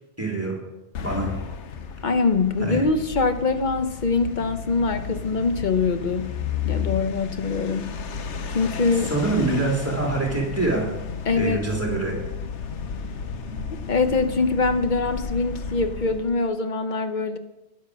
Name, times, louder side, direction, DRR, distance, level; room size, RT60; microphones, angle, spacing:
voice 1, 0.2-0.6 0.9-1.3 2.6-2.8 9.1-10.8 11.3-12.1, right 3 dB, 10° right, -2 dB, 3.3 m, -25 dB
sound 1, 0.9-16.4, left 6 dB, 85° left, 1.2 m, -33 dB
voice 2, 2.0-6.4 6.6-7.9 8.5-9.1 11.2-11.6 13.7-17.4, left 4 dB, 45° left, 8 dB, 1.1 m, -23 dB
12.0 x 10.0 x 6.3 m, 0.97 s
omnidirectional pair, 1.2 m